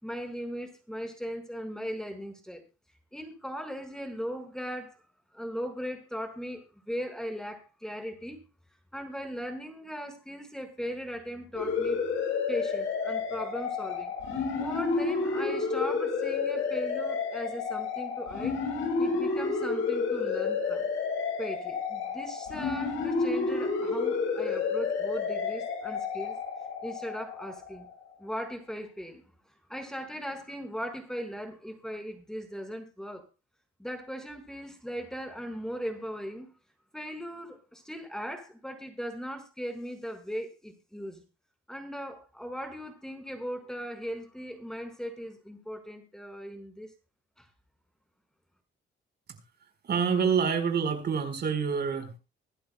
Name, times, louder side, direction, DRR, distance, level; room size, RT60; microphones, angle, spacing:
voice 1, 0.0-2.6 3.1-5.0 5.3-8.4 8.9-12.0 12.5-14.1 14.6-18.6 19.0-20.8 21.4-26.4 26.8-27.9 28.2-29.2 29.7-33.2 33.8-36.5 36.9-41.2 41.7-46.9 47.4-47.5, equal, 5° left, 5 dB, 5.0 m, -38 dB
sound 1, 11.5-27.9, left 4 dB, 80° left, 7.6 m, -30 dB
voice 2, 49.8-52.2, right 6 dB, 55° right, 6 dB, 4.6 m, -27 dB
25.0 x 11.5 x 2.3 m, 0.29 s
cardioid pair, 90°, 20 cm